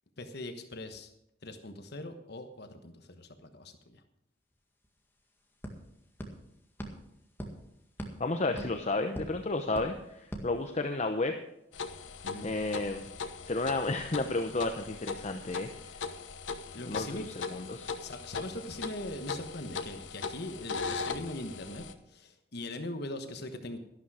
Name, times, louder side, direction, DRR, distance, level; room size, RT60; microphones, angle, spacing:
voice 1, 0.2-1.1 1.4-4.0 12.2-12.5 16.7-17.3 17.5-17.6 18.0-23.8, left 1 dB, 60° left, 7 dB, 1.2 m, -41 dB
sound 1, 4.5-4.6 4.8-11.3, right 1 dB, 10° left, 1.9 m, -45 dB
voice 2, 8.2-11.3 12.4-13.1 13.4-15.7 16.9-17.9, left 2 dB, 35° left, 6 dB, 0.8 m, -32 dB
sound 2, 11.7-21.9, left 4 dB, 80° left, 1.0 m, -39 dB
12.5 x 12.0 x 4.9 m, 0.84 s
head